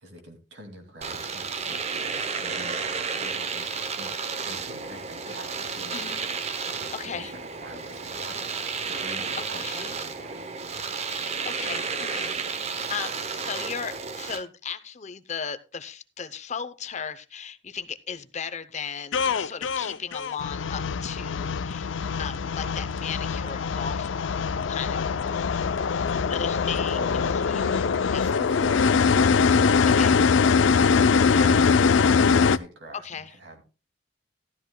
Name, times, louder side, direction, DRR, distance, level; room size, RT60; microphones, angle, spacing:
voice 1, 0.0-4.1 4.4-10.5 26.9-33.6, right 1 dB, 70° right, 4 dB, 2.3 m, -45 dB
Domestic sounds home sounds, 1.0-14.4, right 5 dB, 35° right, 0.7 m, -32 dB
voice 2, 5.9-6.2 6.9-7.3 9.4-9.9 11.2-12.4 12.9-21.9 22.2-24.1 24.7-25.5 26.3-27.0 27.3-27.8 28.1-28.3 29.9-30.2 31.2-31.6 32.9-33.3, left 7 dB, 40° left, 12 dB, 0.7 m, -36 dB
sound 1, 19.1-32.6, left 5 dB, 80° left, 0.5 m, -22 dB
12.5 x 12.5 x 2.2 m, 0.32 s
head